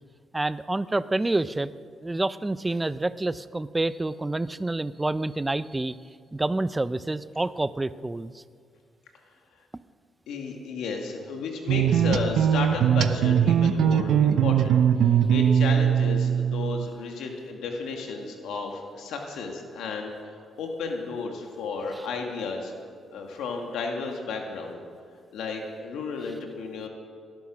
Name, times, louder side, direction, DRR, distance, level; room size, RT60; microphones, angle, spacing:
voice 1, 0.3-1.7 2.0-6.0 6.3-8.4, right 2 dB, 15° right, 15 dB, 0.5 m, -28 dB
voice 2, 10.3-22.7 23.1-24.8 25.3-26.9, left 4 dB, 90° left, 2 dB, 2.1 m, -33 dB
sound 1, 11.7-16.9, right 8 dB, 80° right, 0.7 m, -21 dB
18.5 x 11.5 x 6.0 m, 2.1 s
cardioid pair, 100°, 0 cm